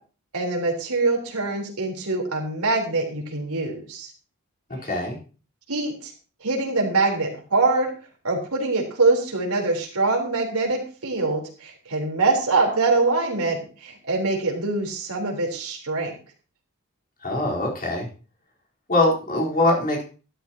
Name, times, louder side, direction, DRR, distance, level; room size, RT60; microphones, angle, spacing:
voice 1, 0.3-4.1 5.7-6.1 6.4-7.9 8.2-16.1, right 3 dB, 90° right, 1 dB, 4.0 m, -24 dB
voice 2, 4.7-5.2 17.2-18.1 18.9-20.0, left 2 dB, 40° left, -2 dB, 4.3 m, -22 dB
12.5 x 12.5 x 3.0 m, 0.37 s
head